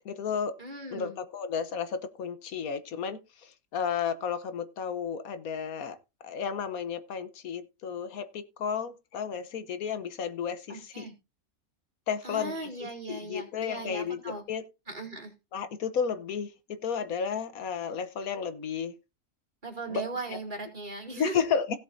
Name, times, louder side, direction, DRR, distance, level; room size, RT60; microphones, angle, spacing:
voice 1, 0.0-0.5 0.9-6.0 6.2-11.1 12.1-14.6 15.5-18.9 19.9-20.0 20.3-20.4 21.2-21.8, left 7 dB, 80° left, 1.4 m, -33 dB
voice 2, 0.6-1.2 10.7-11.2 12.2-14.4 14.9-15.3 19.6-21.4, right 3 dB, 35° right, 2.7 m, -38 dB
16.5 x 7.9 x 2.7 m
omnidirectional pair, 1.5 m